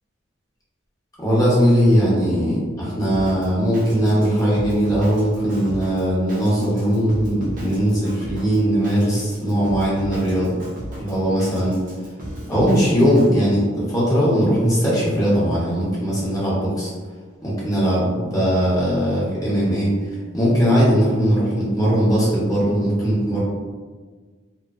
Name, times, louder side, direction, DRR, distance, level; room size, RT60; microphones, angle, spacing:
voice 1, 1.2-10.5 11.0-11.8 12.5-16.9 17.4-19.9 20.3-23.4, equal, 15° left, -8 dB, 0.8 m, -19 dB
Drum kit, 3.1-13.3, right 1 dB, 45° right, 0.5 m, -36 dB
2.4 x 2.2 x 2.4 m, 1.4 s
head